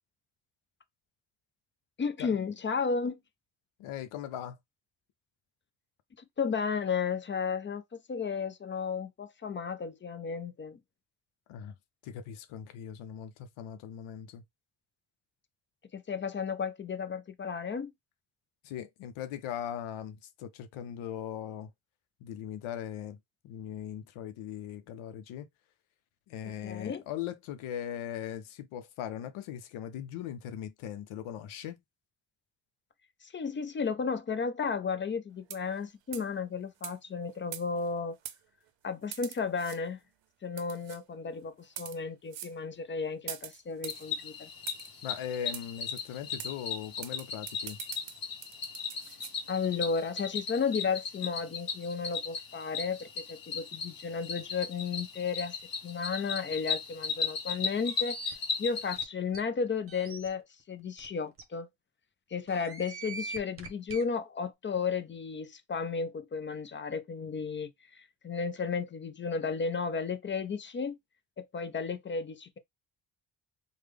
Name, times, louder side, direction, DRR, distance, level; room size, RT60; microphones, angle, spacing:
voice 1, 2.0-3.2 6.2-10.8 15.9-17.9 26.6-27.0 33.2-38.2 38.8-40.0 40.4-44.5 49.5-55.6 55.8-58.2 58.6-61.7 62.3-71.0 71.4-72.6, left 5 dB, 25° left, 0.4 m, -33 dB
voice 2, 3.8-4.6 11.5-11.7 12.0-14.4 18.6-21.7 22.2-23.2 23.4-25.5 26.3-31.8 45.0-47.8, left 10 dB, 85° left, 0.6 m, -39 dB
sound 1, 35.4-35.8 36.1-36.3 36.8-37.0 37.5-37.9 38.3-38.4 39.1-39.8 40.6-41.0 41.6-42.0 42.3-42.6 43.3-44.0 44.7-44.9 45.5-45.7 46.0-46.1 46.4-46.5 47.0-49.3, right 11 dB, 65° right, 0.7 m, -43 dB
Cricket, 43.8-59.0, left 6 dB, 45° left, 1.1 m, -37 dB
sound 2, 57.8-58.3 59.0-59.1 59.3-59.4 59.9-60.3 61.0-61.1 61.4-61.5 62.5-64.0, right 4 dB, 30° right, 0.8 m, -42 dB
3.3 x 2.2 x 3.3 m
cardioid pair, 100°, 48 cm